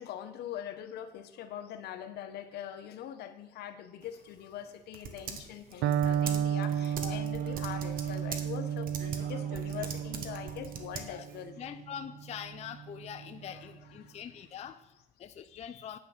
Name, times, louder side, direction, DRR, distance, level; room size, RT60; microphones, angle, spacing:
voice 1, 0.0-11.5 13.5-13.6 14.0-14.2, left 10 dB, 75° left, 9 dB, 0.9 m, -42 dB
Typing, 4.0-11.5, right 6 dB, 55° right, 1.2 m, -43 dB
Electric guitar, 5.8-13.7, right 9 dB, 90° right, 0.6 m, -33 dB
voice 2, 11.6-16.0, left 9 dB, 40° left, 9 dB, 0.4 m, -44 dB
8.9 x 5.8 x 6.5 m, 0.91 s
cardioid pair, 110°, 17 cm